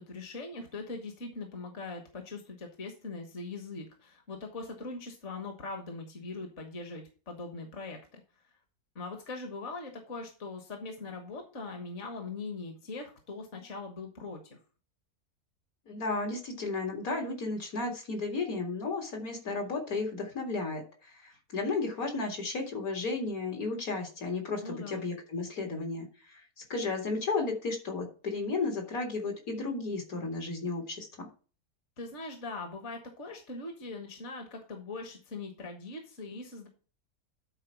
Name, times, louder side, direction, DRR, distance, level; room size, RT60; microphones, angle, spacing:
voice 1, 0.0-8.2 8.9-14.6 24.6-25.0 32.0-36.7, left 3 dB, 50° left, 4 dB, 1.7 m, -41 dB
voice 2, 15.9-26.4 26.7-31.3, left 3 dB, 65° left, 2 dB, 2.6 m, -33 dB
10.0 x 4.3 x 5.9 m, 0.37 s
omnidirectional pair, 1.6 m